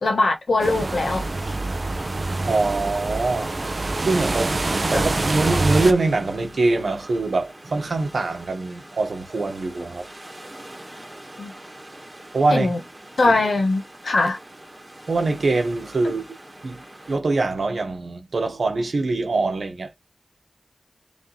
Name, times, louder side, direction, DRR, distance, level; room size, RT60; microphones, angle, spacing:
voice 1, 0.0-1.2 4.9-5.0 11.4-11.5 12.5-12.8 13.2-14.4, left 2 dB, 90° left, 1.1 m, -21 dB
sound 1, 0.6-5.9, right 2 dB, 55° right, 0.8 m, -25 dB
sound 2, 0.7-17.2, right 1 dB, 30° right, 2.0 m, -42 dB
voice 2, 2.5-3.5 4.0-4.6 4.9-10.1 12.3-12.7 13.3-13.4 15.1-16.4 16.6-19.9, right 3 dB, 85° right, 1.4 m, -23 dB
3.6 x 3.6 x 4.1 m
cardioid pair, 40°, 0 cm